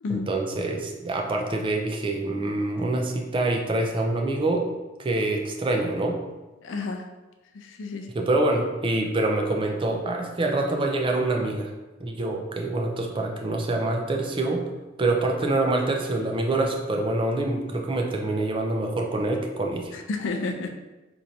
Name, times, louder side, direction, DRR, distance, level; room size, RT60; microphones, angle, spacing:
voice 1, 0.1-4.7 5.0-6.2 8.1-11.7 12.0-14.6 15.0-19.9, right 2 dB, 25° right, 2 dB, 0.4 m, -26 dB
voice 2, 6.6-7.1 7.5-8.1 19.9-20.7, left 3 dB, 65° left, 4 dB, 0.4 m, -31 dB
4.4 x 2.5 x 2.7 m, 1.1 s
head